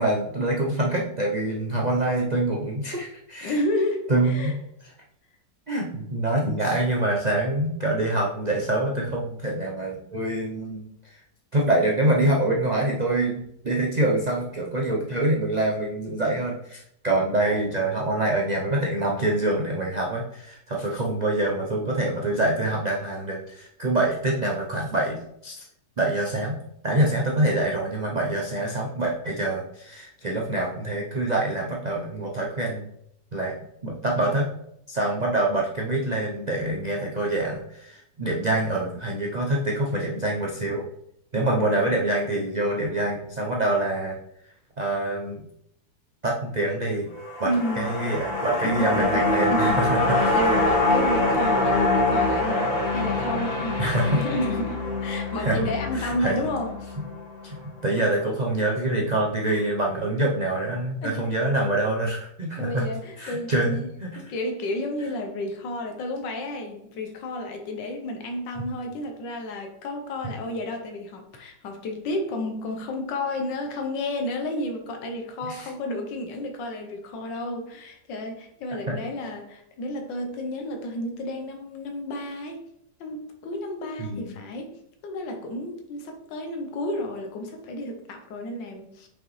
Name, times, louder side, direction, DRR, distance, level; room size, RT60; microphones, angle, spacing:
voice 1, 0.0-3.6 4.1-4.6 5.7-11.2 11.5-25.6 26.0-26.6 26.8-32.9 33.3-33.5 33.8-34.5 34.9-40.9 41.3-44.2 44.4-45.5 46.2-47.1 47.4-47.5 47.8-50.0 53.8-54.2 55.4-56.4 57.4-62.9 63.2-64.1 75.4-75.7 78.9-79.0 84.1-84.3, right 1 dB, 85° right, -1 dB, 0.3 m, -25 dB
voice 2, 3.4-4.5 47.4-47.9 48.6-49.9 50.1-56.7 61.0-61.3 62.6-63.8 64.1-82.6 83.0-89.1, left 1 dB, 85° left, 3 dB, 1.6 m, -31 dB
sound 1, 47.1-57.5 57.9-58.0, left 2 dB, 35° left, 2.1 m, -24 dB
5.7 x 5.2 x 3.1 m, 0.73 s
omnidirectional pair, 1.9 m